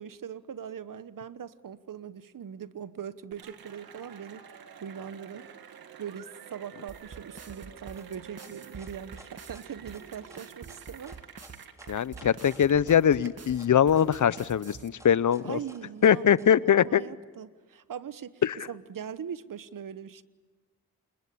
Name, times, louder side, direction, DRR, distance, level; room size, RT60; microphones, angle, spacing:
voice 1, 0.0-5.5 6.0-11.2 15.4-20.2, right 8 dB, 65° right, 15 dB, 1.1 m, -41 dB
Cheering / Applause, 3.3-13.3, right 8 dB, 85° right, 2.0 m, -49 dB
sound 1, 6.9-14.9, right 5 dB, 45° right, 1.9 m, -47 dB
sound 2, 7.9-16.5, equal, 10° right, 4.2 m, -54 dB
voice 2, 11.9-15.6 16.0-17.0 18.4-18.6, left 8 dB, 55° left, 19 dB, 0.8 m, -22 dB
28.0 x 21.5 x 8.6 m, 1.4 s
supercardioid pair, 45°, 35 cm